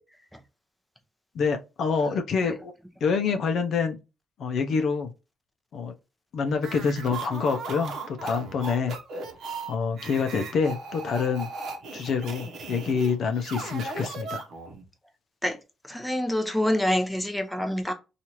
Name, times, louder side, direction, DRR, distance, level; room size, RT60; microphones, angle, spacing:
voice 1, 1.3-2.7 3.0-4.0 4.4-5.1 5.7-5.9 6.3-8.9 9.7-11.5 11.9-14.4, left 5 dB, 65° left, 0.4 m, -26 dB
sound 1, 6.6-14.8, right 3 dB, 70° right, 0.8 m, -37 dB
voice 2, 15.9-17.9, left 1 dB, ahead, 0.6 m, -26 dB
3.0 x 2.4 x 2.8 m
cardioid pair, 90°, 0 cm